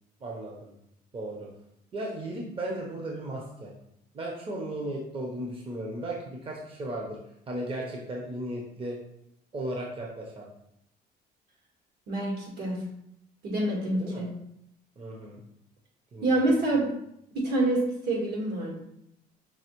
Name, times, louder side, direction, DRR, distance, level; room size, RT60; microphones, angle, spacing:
voice 1, 0.2-0.7 1.1-1.5 1.9-3.7 4.1-7.2 7.5-9.0 9.5-10.5 14.0-14.2 15.0-15.4 16.1-16.4, right 1 dB, 30° right, -1 dB, 0.8 m, -35 dB
voice 2, 12.1-12.8 13.4-14.3 16.2-16.9 17.3-18.8, right 2 dB, 70° right, -2 dB, 1.6 m, -27 dB
5.4 x 2.8 x 3.0 m, 0.77 s
cardioid pair, 110°, 17 cm